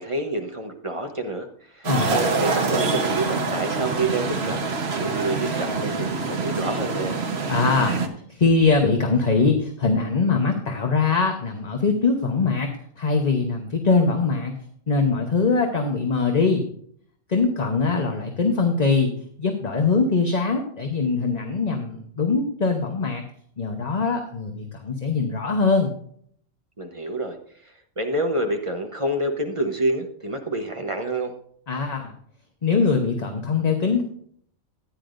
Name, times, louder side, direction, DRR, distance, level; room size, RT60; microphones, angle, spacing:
voice 1, 0.0-7.2 26.8-27.4 28.0-31.3, right 1 dB, 25° right, 4 dB, 0.9 m, -28 dB
sound 1, 1.8-8.1, right 4 dB, 55° right, 1.3 m, -25 dB
voice 2, 7.5-7.9 8.3-12.7 13.0-14.6 14.9-16.6 17.3-19.1 19.4-23.2 23.6-25.9 31.7-32.1 32.6-34.0, left 4 dB, 35° left, 3 dB, 1.0 m, -22 dB
14.5 x 9.9 x 2.6 m, 0.62 s
omnidirectional pair, 1.4 m